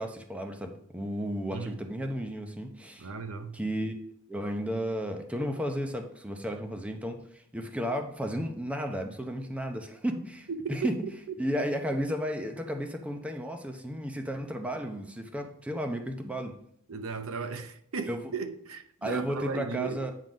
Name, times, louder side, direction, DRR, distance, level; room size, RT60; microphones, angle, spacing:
voice 1, 0.0-3.1 3.5-4.0 4.3-11.0 11.4-16.5 18.0-18.2 19.0-20.1, equal, 5° right, 0.7 m, -33 dB
voice 2, 3.0-3.6 10.8-10.9 16.9-20.1, right 4 dB, 85° right, 0.7 m, -36 dB
9.2 x 3.8 x 5.1 m
head